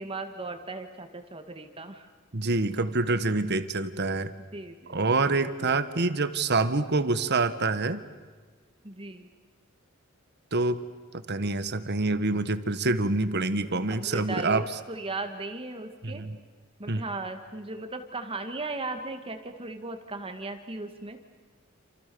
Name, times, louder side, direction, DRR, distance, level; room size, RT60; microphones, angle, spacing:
voice 1, 0.0-2.1 4.5-5.8 8.8-9.3 13.9-16.2 16.8-21.2, right 3 dB, 25° right, 6 dB, 1.9 m, -37 dB
voice 2, 2.3-4.3 4.9-8.0 10.5-10.8 11.3-14.6 16.0-16.4 16.9-17.0, right 3 dB, 55° right, 12 dB, 1.6 m, -26 dB
29.0 x 28.5 x 7.0 m, 1.5 s
head